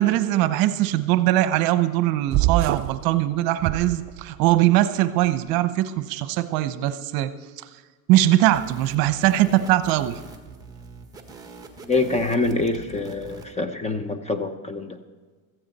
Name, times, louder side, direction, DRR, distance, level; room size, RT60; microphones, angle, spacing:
voice 1, 0.0-7.3 8.1-10.2, right 14 dB, 60° right, 12 dB, 0.9 m, -21 dB
sound 1, 2.3-3.0 3.6-4.5, right 16 dB, 45° right, 0.5 m, -25 dB
sound 2, 8.5-13.5, right 4 dB, 10° right, 1.6 m, -44 dB
voice 2, 11.8-15.0, left 3 dB, 15° left, 9 dB, 0.8 m, -25 dB
15.5 x 14.0 x 4.2 m, 1.4 s
supercardioid pair, 130°, 42 cm